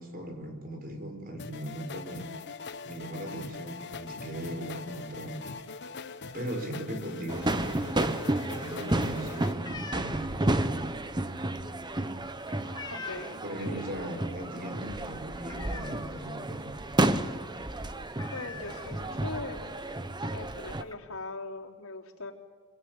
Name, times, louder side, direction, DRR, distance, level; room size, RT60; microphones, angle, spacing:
voice 1, 0.0-2.3 2.8-5.5 6.0-7.9 8.6-10.7 13.4-16.8, right 1 dB, 40° right, 5 dB, 5.0 m, -39 dB
sound 1, 1.4-9.5, left 4 dB, 50° left, 1.2 m, -42 dB
sound 2, 7.3-20.8, right 1 dB, 20° right, 1.1 m, -32 dB
sound 3, 9.3-13.6 13.9-14.3 14.6-14.7 15.0-16.4 16.7-16.9 17.1-17.3 17.6-17.7 18.1-19.4 20.2-20.3 20.5-21.0, left 4 dB, 20° left, 1.6 m, -45 dB
voice 2, 12.9-13.9 18.3-19.6 20.3-22.3, left 3 dB, 70° left, -2 dB, 3.8 m, -40 dB
25.5 x 24.5 x 9.7 m, 1.4 s
head